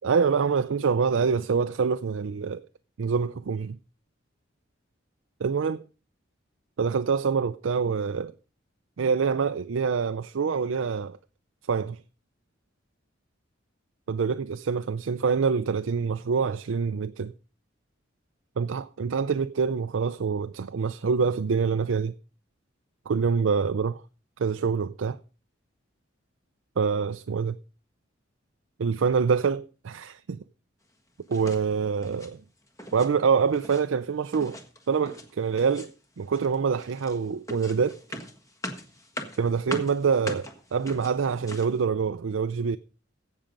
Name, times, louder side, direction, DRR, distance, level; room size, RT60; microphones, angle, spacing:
voice 1, 0.0-2.6 3.0-3.8 5.4-5.8 6.8-8.3 9.0-11.2 11.7-12.0 14.1-17.3 18.6-22.1 23.1-24.0 24.4-25.2 26.8-27.6 28.8-30.4 31.3-32.4 32.9-34.6 34.9-38.0 39.4-42.8, right 5 dB, 90° right, 0.5 m, -26 dB
sound 1, 31.3-31.7 32.0-32.3 32.7-33.1 33.4-33.8 34.3-35.3 35.6-36.0 36.3-41.8, left 1 dB, 15° left, 1.4 m, -40 dB
16.0 x 6.4 x 5.2 m
head